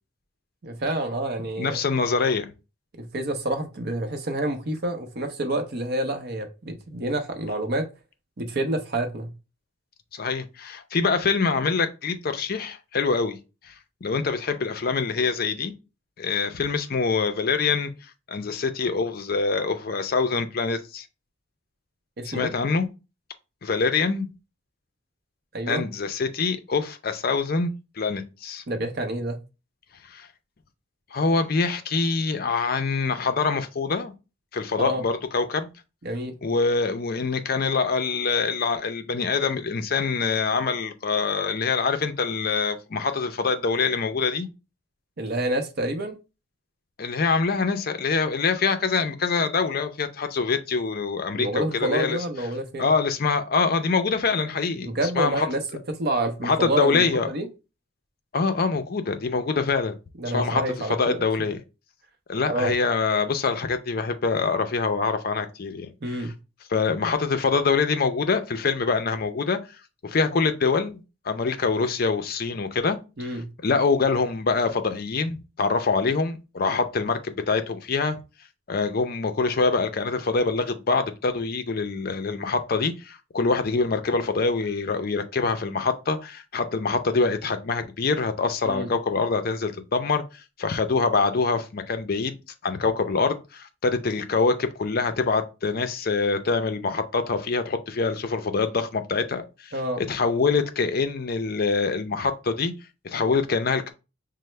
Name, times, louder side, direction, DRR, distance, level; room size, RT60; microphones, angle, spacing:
voice 1, 0.6-1.8 3.0-7.9 8.4-9.3 22.2-22.5 25.5-25.8 28.7-29.4 34.8-35.0 36.0-36.4 45.2-46.2 51.3-52.9 54.8-55.6 56.0-57.5 60.2-61.2 62.5-62.7 66.0-66.3 73.2-73.5 88.6-88.9 99.7-100.0, right 1 dB, 50° right, 0.7 m, -28 dB
voice 2, 1.6-2.5 10.1-13.4 13.6-13.7 14.0-15.7 16.2-17.9 18.3-21.1 22.2-22.9 23.6-24.3 25.7-27.7 28.0-28.6 30.1-30.3 31.1-34.1 34.5-35.7 36.4-44.5 47.0-52.2 52.8-55.5 56.4-57.3 58.3-59.9 60.3-61.6 62.3-66.3 66.7-69.6 70.0-73.4 73.6-78.2 78.7-92.3 92.6-102.7 103.0-103.9, left 4 dB, 45° left, 0.4 m, -25 dB
5.4 x 2.0 x 3.2 m
head